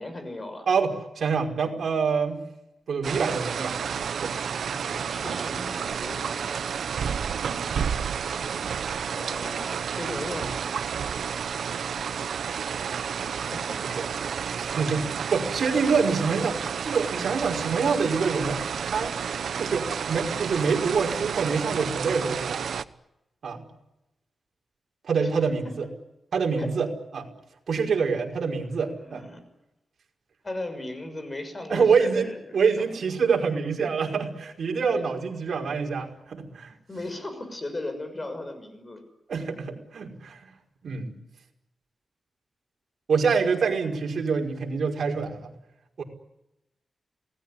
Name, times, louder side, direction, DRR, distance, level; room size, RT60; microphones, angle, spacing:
voice 1, 0.0-0.7 4.9-6.7 8.9-10.6 13.3-14.1 14.9-15.2 16.4-16.5 25.2-25.3 26.6-26.7 29.0-29.4 30.4-32.8 34.7-35.1 36.9-39.0, left 2 dB, 25° left, 8 dB, 6.4 m, -37 dB
voice 2, 0.7-2.4 2.9-5.1 7.4-7.6 8.4-8.6 13.8-13.9 14.5-19.1 19.6-22.6 23.4-23.7 25.0-25.9 26.3-26.9 27.1-27.3 27.7-29.3 31.7-32.3 32.5-36.7 39.3-40.4 40.8-41.1 43.1-45.5 46.0-46.1, right 5 dB, 65° right, 1 dB, 5.4 m, -26 dB
sound 1, 3.0-22.8, right 7 dB, 85° right, 1.0 m, -31 dB
28.0 x 19.5 x 9.9 m, 0.90 s
wide cardioid pair, 145°, 0 cm